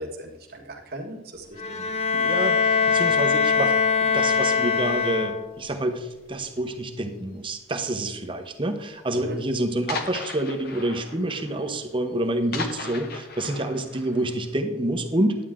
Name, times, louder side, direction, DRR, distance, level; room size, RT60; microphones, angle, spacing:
voice 1, 0.0-1.8 9.1-9.4, right 1 dB, 50° right, 0 dB, 1.6 m, -38 dB
Bowed string instrument, 1.6-5.7, left 5 dB, 35° left, 0.7 m, -22 dB
voice 2, 2.1-15.4, right 1 dB, 25° right, 6 dB, 0.9 m, -28 dB
sound 1, 4.7-5.0 5.4-5.5 5.8-5.9 6.7-7.1 8.0-8.1 8.4-8.5 8.9-9.0 9.3-9.4 9.9-14.6, left 4 dB, 50° left, 1.0 m, -38 dB
11.5 x 9.1 x 3.7 m, 1.0 s
head